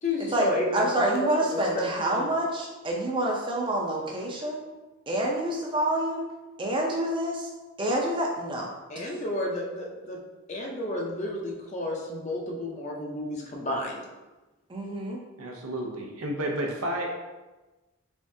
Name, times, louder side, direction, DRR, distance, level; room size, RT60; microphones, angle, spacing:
voice 1, 0.0-0.9 1.1-2.2 8.9-10.2 10.5-14.1, left 1 dB, 30° left, -1 dB, 0.5 m, -31 dB
voice 2, 0.7-4.6 5.1-6.2 6.6-7.5 7.8-8.7 14.7-15.2, right 1 dB, 20° right, -1 dB, 0.5 m, -27 dB
voice 3, 15.4-17.1, right 1 dB, 90° right, 1 dB, 0.7 m, -31 dB
3.5 x 3.4 x 2.7 m, 1.1 s
head